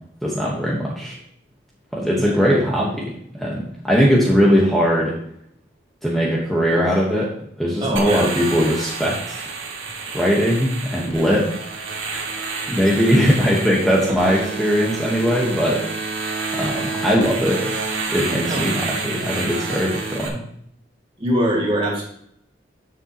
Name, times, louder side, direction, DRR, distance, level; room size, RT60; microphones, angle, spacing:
voice 1, 0.2-1.2 1.9-5.2 6.0-7.3 7.6-9.5 10.1-11.5 12.7-15.8 16.5-17.6 18.1-20.4, equal, ahead, -5 dB, 1.2 m, -20 dB
voice 2, 7.8-8.2 14.3-14.4 18.5-18.6 21.2-22.0, equal, 25° right, -3 dB, 2.2 m, -22 dB
sound 1, 8.0-20.3, right 4 dB, 85° right, 2.0 m, -29 dB
11.5 x 6.9 x 2.9 m, 0.70 s
head